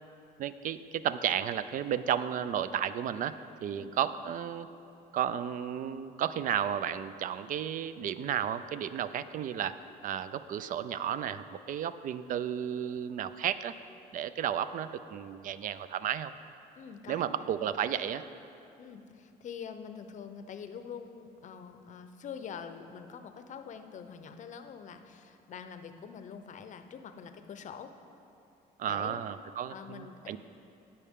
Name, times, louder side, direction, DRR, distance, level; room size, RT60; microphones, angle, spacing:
voice 1, 0.4-4.7 5.1-13.7 14.1-16.3 17.1-18.2 28.8-30.4, right 9 dB, 55° right, 14 dB, 0.4 m, -33 dB
voice 2, 16.8-17.5 18.8-27.9 28.9-29.2 29.7-30.3, left 7 dB, 45° left, 8 dB, 0.6 m, -45 dB
16.5 x 5.7 x 3.6 m, 2.7 s
cardioid pair, 110°, 17 cm